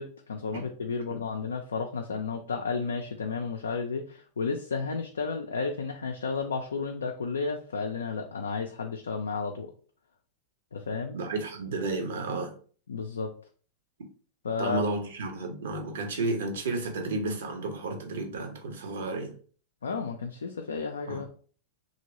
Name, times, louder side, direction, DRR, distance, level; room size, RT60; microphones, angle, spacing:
voice 1, 0.0-9.7 10.7-11.2 12.9-13.3 14.4-14.8 19.8-21.3, left 4 dB, 70° left, 3 dB, 0.3 m, -32 dB
voice 2, 11.1-12.5 14.6-19.3 21.1-21.3, right 2 dB, 60° right, 5 dB, 0.7 m, -32 dB
2.9 x 2.6 x 2.8 m, 0.43 s
figure-of-eight pair, 90°, 0 cm